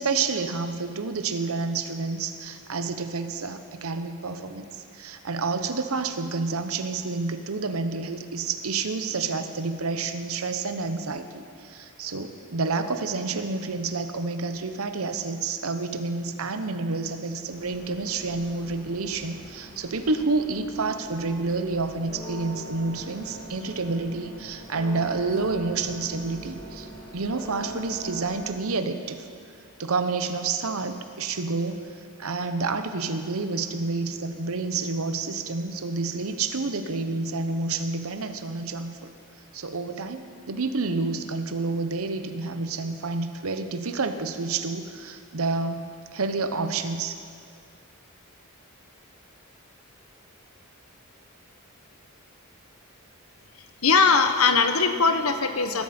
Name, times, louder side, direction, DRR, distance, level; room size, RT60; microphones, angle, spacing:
voice 1, 0.0-4.6 4.9-29.3 29.8-31.8 32.2-39.1 39.5-47.2, right 3 dB, 80° right, 9 dB, 0.9 m, -29 dB
sound 1, 17.5-28.5, right 1 dB, 20° left, 2.7 m, -42 dB
voice 2, 53.8-55.8, left 4 dB, 80° left, 7 dB, 1.1 m, -20 dB
20.0 x 12.5 x 4.4 m, 2.2 s
head